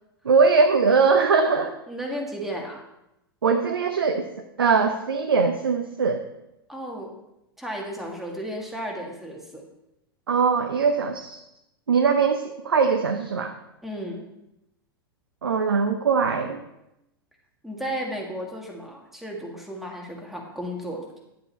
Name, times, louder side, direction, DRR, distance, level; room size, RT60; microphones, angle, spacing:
voice 1, 0.2-1.7 3.4-4.3 4.6-6.2 10.3-11.4 11.9-13.5 15.4-16.6, right 5 dB, 70° right, 5 dB, 0.8 m, -21 dB
voice 2, 1.5-2.8 6.7-7.1 7.6-9.6 13.8-14.2 17.6-21.1, equal, ahead, -1 dB, 2.2 m, -34 dB
11.0 x 7.7 x 4.3 m, 0.89 s
figure-of-eight pair, 95°, 13 cm